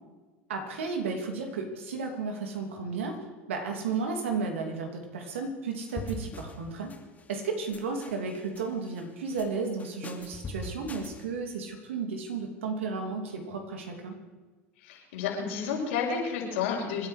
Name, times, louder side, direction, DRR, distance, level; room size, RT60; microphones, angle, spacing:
voice 1, 0.5-3.2 3.5-6.9 7.3-14.2, right 4 dB, 85° right, 4 dB, 2.8 m, -33 dB
sound 1, 5.9-6.6 6.9-7.4 7.7-8.7 9.0-9.5 9.8-11.2, left 1 dB, 25° left, 2.7 m, -41 dB
voice 2, 14.8-17.1, left 6 dB, 80° left, -2 dB, 5.2 m, -31 dB
26.5 x 10.5 x 5.0 m, 1.3 s
hypercardioid pair, 90°, 7 cm